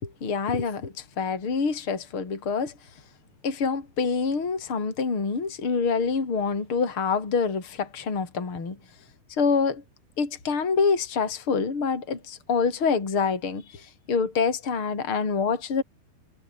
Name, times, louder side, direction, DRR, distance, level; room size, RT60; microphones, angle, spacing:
voice 1, 0.0-2.7 3.4-8.8 9.4-9.8 10.2-13.8 14.1-15.8, left 5 dB, 25° left, 5.2 m, -26 dB
omnidirectional pair, 5.6 m